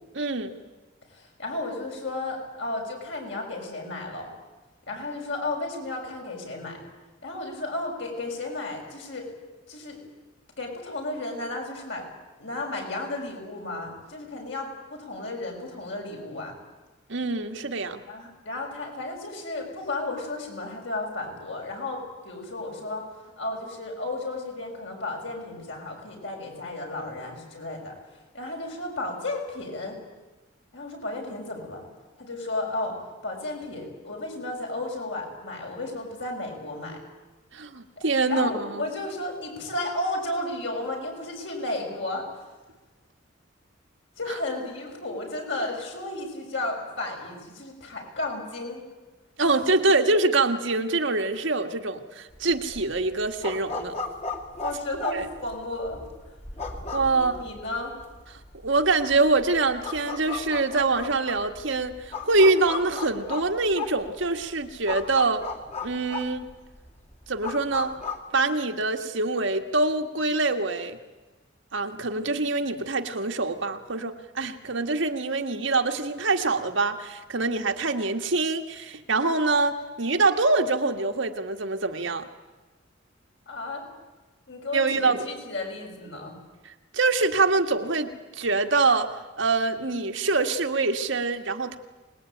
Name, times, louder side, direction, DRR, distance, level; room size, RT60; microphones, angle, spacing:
voice 1, 0.2-0.5 17.1-18.0 37.5-38.8 49.4-54.0 55.1-55.3 56.9-57.4 58.6-65.4 65.8-66.5 67.3-67.9 68.3-71.0 71.7-82.2 84.7-85.3 86.7-91.8, right 3 dB, 70° right, 5 dB, 1.8 m, -25 dB
voice 2, 1.1-4.3 4.9-6.8 7.2-9.3 9.7-10.0 10.6-12.0 12.4-16.6 18.1-23.1 23.4-28.0 28.3-30.0 30.7-31.9 32.2-32.9 33.2-37.0 38.0-42.3 44.2-48.8 49.4-49.6 54.6-56.0 57.1-57.9 83.5-83.8 84.5-86.4, left 2 dB, 65° left, 1 dB, 7.0 m, -33 dB
sound 1, 52.3-68.2, left 4 dB, 35° left, 2.3 m, -36 dB
25.5 x 20.5 x 9.2 m, 1.2 s
head